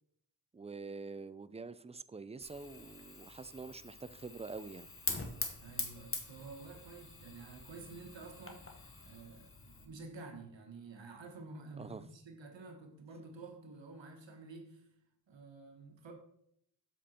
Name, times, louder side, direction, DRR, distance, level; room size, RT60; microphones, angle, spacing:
voice 1, 0.5-4.9 11.8-12.0, right 4 dB, 15° right, 0.4 m, -46 dB
Fire, 2.4-9.9, left 3 dB, 30° left, 1.5 m, -44 dB
voice 2, 5.6-14.9 15.3-16.1, right 3 dB, 85° right, 1.3 m, -50 dB
7.5 x 5.1 x 4.3 m
cardioid pair, 45°, 43 cm